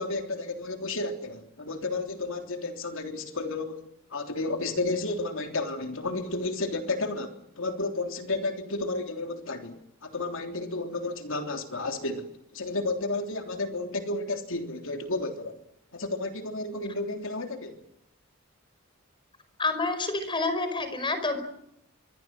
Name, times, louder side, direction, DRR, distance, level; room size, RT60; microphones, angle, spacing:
voice 1, 0.0-3.8 4.1-12.3 12.5-15.6 15.9-17.8, left 2 dB, 65° left, 3.4 m, -32 dB
voice 2, 19.6-21.4, left 3 dB, 20° left, 5.1 m, -28 dB
25.0 x 24.0 x 7.7 m
head